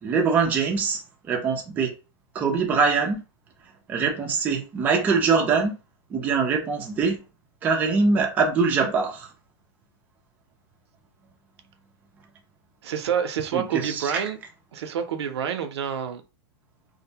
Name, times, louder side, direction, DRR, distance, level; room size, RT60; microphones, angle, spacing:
voice 1, 0.0-1.9 2.3-3.2 3.9-5.8 6.1-7.2 7.6-9.3 13.5-14.2, right 5 dB, 10° right, 0.4 m, -23 dB
voice 2, 12.8-14.4 14.7-16.2, right 8 dB, 90° right, 0.6 m, -28 dB
2.5 x 2.1 x 2.7 m
supercardioid pair, 165°, 14 cm